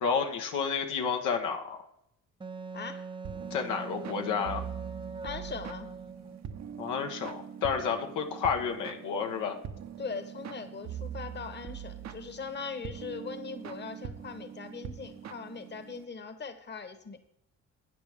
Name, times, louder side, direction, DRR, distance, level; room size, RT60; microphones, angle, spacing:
voice 1, 0.0-1.8 3.5-4.6 6.8-9.6, left 6 dB, 90° left, 3 dB, 1.2 m, -30 dB
Wind instrument woodwind instrument, 2.4-6.5, right 4 dB, 15° right, 0.6 m, -42 dB
voice 2, 2.7-3.0 5.2-5.9 10.0-17.2, left 5 dB, 35° left, 9 dB, 1.2 m, -40 dB
sound 1, 3.2-16.0, right 8 dB, 65° right, 0.9 m, -43 dB
12.5 x 8.8 x 3.5 m, 0.79 s
cardioid pair, 90°, 30 cm